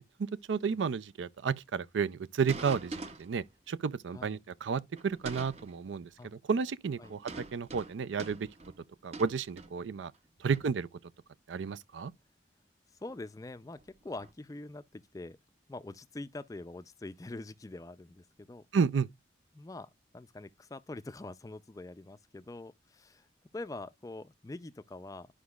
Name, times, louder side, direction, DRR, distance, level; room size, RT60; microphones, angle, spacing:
voice 1, 0.0-8.5 9.0-10.1 10.4-10.9 11.5-12.1 18.7-19.1, right 5 dB, 85° right, 0.4 m, -32 dB
sound 1, 2.5-3.5 4.9-5.8 7.0-10.2 10.5-10.8 12.0-12.1 13.1-13.2 13.8-14.3, right 3 dB, 35° right, 0.7 m, -45 dB
voice 2, 13.0-15.4 15.7-18.7 19.5-23.3 23.5-25.3, left 2 dB, 20° left, 0.4 m, -44 dB
11.5 x 5.1 x 2.3 m
head